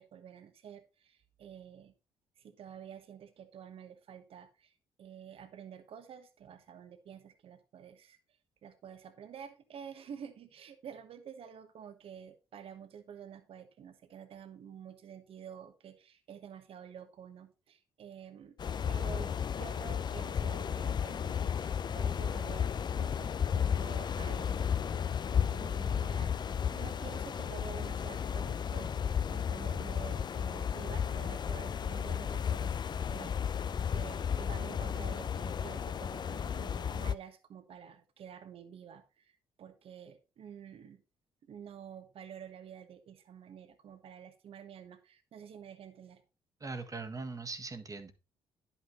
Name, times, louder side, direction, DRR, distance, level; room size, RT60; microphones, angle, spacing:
voice 1, 0.0-1.9 2.4-8.2 8.6-18.5 18.9-24.7 25.3-26.3 26.7-32.7 33.0-33.6 33.9-41.0 41.5-46.2, right 8 dB, 60° right, 9 dB, 1.2 m, -49 dB
sound 1, 18.6-37.1, left 7 dB, 40° left, 0.5 m, -33 dB
voice 2, 46.6-48.1, right 3 dB, 30° right, 7 dB, 1.5 m, -40 dB
10.5 x 5.8 x 3.8 m, 0.30 s
hypercardioid pair, 50°, 11 cm